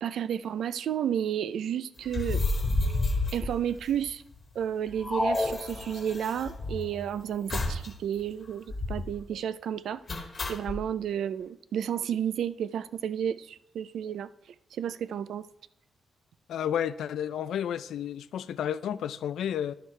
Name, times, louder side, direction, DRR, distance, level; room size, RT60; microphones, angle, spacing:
voice 1, 0.0-2.4 3.3-4.2 4.5-10.0 10.5-14.3 14.7-15.5, right 9 dB, 75° right, 0.5 m, -31 dB
sound 1, 2.0-4.3 4.6-4.7 4.9-7.0 7.5-7.9 8.2-8.3 8.7-9.2 10.1-10.8, left 2 dB, 35° left, 1.3 m, -31 dB
sound 2, 5.0-6.5, left 1 dB, 10° left, 0.9 m, -31 dB
voice 2, 16.5-19.7, left 9 dB, 85° left, 0.4 m, -31 dB
11.5 x 10.5 x 3.3 m
wide cardioid pair, 145°, 0 cm